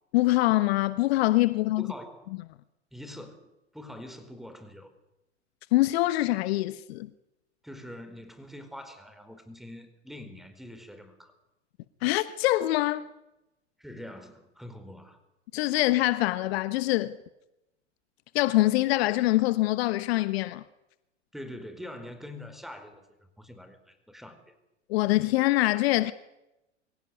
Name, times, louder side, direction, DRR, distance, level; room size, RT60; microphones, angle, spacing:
voice 1, 0.1-1.9 5.7-7.1 12.0-13.1 15.5-17.2 18.3-20.6 24.9-26.1, left 18 dB, 55° left, 1.2 m, -24 dB
voice 2, 1.8-2.3 2.9-4.9 7.6-11.3 13.8-15.2 21.3-24.5, left 1 dB, ahead, 4.5 m, -44 dB
24.0 x 16.5 x 9.7 m
hypercardioid pair, 95°, 36 cm